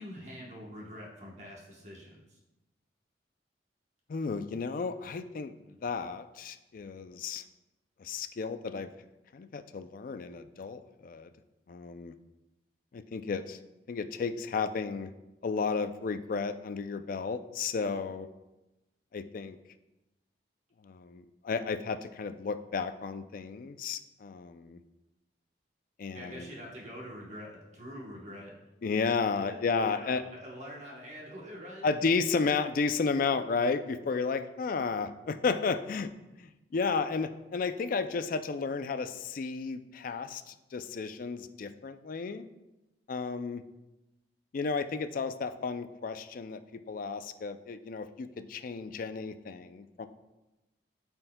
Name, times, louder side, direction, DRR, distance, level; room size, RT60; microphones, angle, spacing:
voice 1, 0.0-2.4 26.1-28.5 29.3-29.6 29.8-32.1, equal, 40° right, -2 dB, 1.1 m, -45 dB
voice 2, 4.1-5.5 5.8-7.4 8.0-8.9 9.3-11.3 11.7-12.1 12.9-13.6 13.9-15.1 15.4-18.3 19.1-19.6 20.8-24.8 26.0-26.5 28.8-30.2 31.8-36.1 36.4-42.4 43.1-43.6 44.5-50.1, left 4 dB, 50° left, 10 dB, 0.4 m, -33 dB
12.0 x 4.4 x 2.2 m, 1.0 s
head